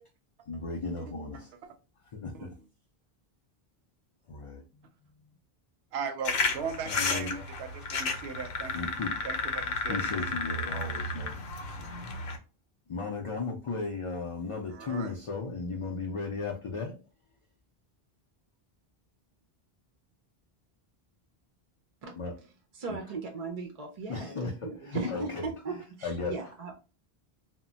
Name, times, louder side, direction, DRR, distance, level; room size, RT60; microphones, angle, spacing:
voice 1, 0.5-1.5 2.1-2.5 4.3-5.3 6.8-7.4 8.7-9.2 9.8-11.4 12.9-17.0 22.1-22.4 22.9-23.0 24.1-26.7, left 3 dB, 50° left, 0.4 m, -36 dB
voice 2, 5.9-8.7 9.2-10.0 14.7-15.1, right 6 dB, 90° right, 0.8 m, -38 dB
sound 1, 6.2-12.4, left 3 dB, 85° left, 0.8 m, -32 dB
voice 3, 22.8-26.7, right 3 dB, 50° right, 0.5 m, -37 dB
2.1 x 2.0 x 3.7 m
omnidirectional pair, 1.0 m